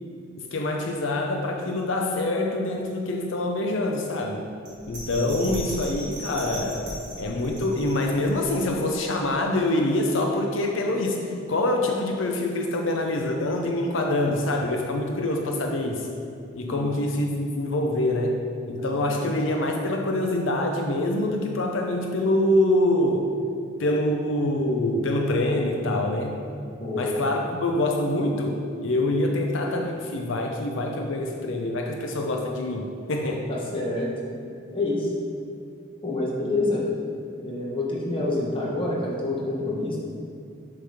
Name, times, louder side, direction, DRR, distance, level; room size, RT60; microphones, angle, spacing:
voice 1, 0.5-4.5 4.9-6.9 7.2-16.1 16.5-18.4 18.7-23.3 23.8-26.4 26.9-33.5, left 1 dB, 80° left, 2 dB, 0.6 m, -25 dB
Bell, 4.7-9.0 9.4-9.5, right 1 dB, 40° right, 1.4 m, -38 dB
voice 2, 26.8-27.1 33.5-34.1 34.7-35.1 36.0-36.8 37.4-40.0, left 2 dB, 25° left, -4 dB, 1.1 m, -27 dB
6.8 x 3.4 x 5.7 m, 2.4 s
head